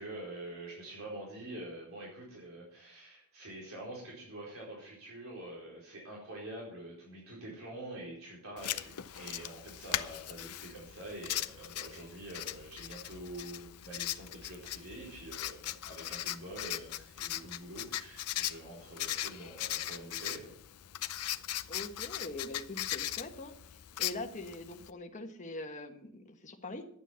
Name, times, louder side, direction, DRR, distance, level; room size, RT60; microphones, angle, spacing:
voice 1, 0.0-20.5, right 1 dB, 65° right, -4 dB, 4.4 m, -46 dB
Writing, 8.6-24.9, left 13 dB, 85° left, 0.6 m, -39 dB
voice 2, 21.7-23.6 24.0-26.9, left 2 dB, 35° left, 3 dB, 1.5 m, -43 dB
12.0 x 9.3 x 5.8 m, 0.64 s
head